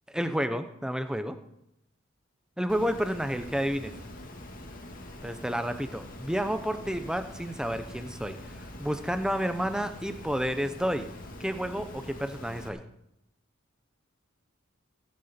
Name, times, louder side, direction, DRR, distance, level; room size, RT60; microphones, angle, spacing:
voice 1, 0.1-1.4 2.6-3.9 5.2-8.4 8.8-11.1 11.4-12.8, equal, 5° right, 9 dB, 0.8 m, -30 dB
Water, 2.7-12.7, left 1 dB, 45° left, 2.0 m, -44 dB
18.0 x 9.8 x 4.4 m, 0.82 s
head